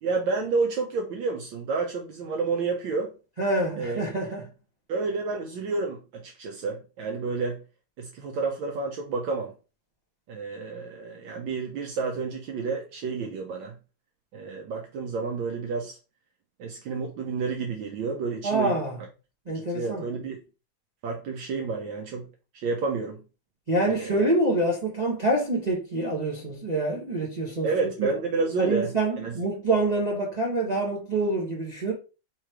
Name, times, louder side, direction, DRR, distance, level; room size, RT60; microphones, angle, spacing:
voice 1, 0.0-3.1 3.8-4.0 4.9-7.6 8.0-9.5 10.3-13.7 14.3-16.0 16.6-18.7 19.7-20.4 21.0-22.3 22.5-23.2 23.9-24.3 27.6-28.9 29.2-29.3, right 4 dB, 75° right, 1.4 m, -30 dB
voice 2, 3.4-4.4 18.4-18.9 19.5-20.1 23.7-27.7 28.0-28.1 28.6-31.9, right 2 dB, 35° right, 0.7 m, -26 dB
3.7 x 3.0 x 4.6 m
omnidirectional pair, 2.3 m